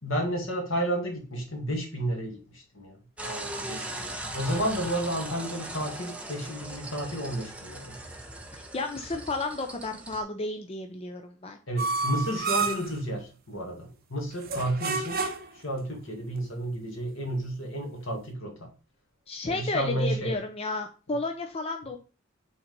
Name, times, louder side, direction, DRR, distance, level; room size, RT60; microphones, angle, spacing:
voice 1, 0.0-3.0 3.2-8.0 11.7-15.2 15.6-18.7 19.4-20.4, right 1 dB, 70° left, 2 dB, 2.2 m, -32 dB
sound 1, 3.2-10.2, right 1 dB, 5° right, 0.9 m, -39 dB
voice 2, 8.7-11.6 19.3-22.0, left 2 dB, 30° left, 4 dB, 0.6 m, -32 dB
sound 2, 11.8-13.0 14.4-15.6, right 4 dB, 50° right, 1.0 m, -29 dB
5.8 x 4.0 x 5.4 m, 0.34 s
head